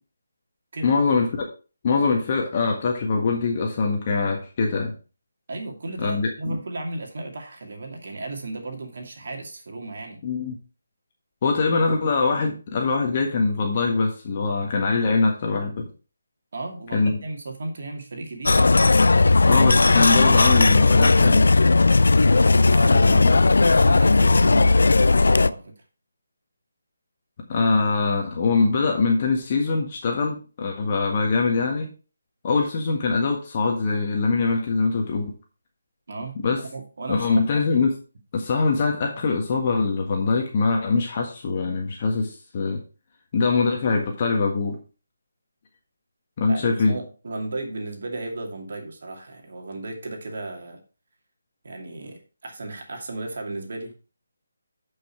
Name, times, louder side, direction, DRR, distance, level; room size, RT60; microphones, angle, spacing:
voice 1, 0.8-1.5 1.8-4.9 6.0-6.6 10.2-10.6 11.4-15.9 16.9-17.2 19.5-21.5 22.9-23.4 27.5-31.9 32.4-35.3 36.4-36.6 37.1-37.9 38.3-42.8 43.3-44.8 46.4-46.9, left 4 dB, 35° left, 1 dB, 1.6 m, -23 dB
voice 2, 5.5-10.2 16.5-18.7 22.6-23.0 23.6-25.7 36.1-37.6 46.5-50.8 51.6-53.9, right 2 dB, 60° right, 2 dB, 2.4 m, -35 dB
sound 1, 18.5-25.5, left 3 dB, 75° left, 0.4 m, -16 dB
10.5 x 5.6 x 4.5 m, 0.34 s
figure-of-eight pair, 160°, 0 cm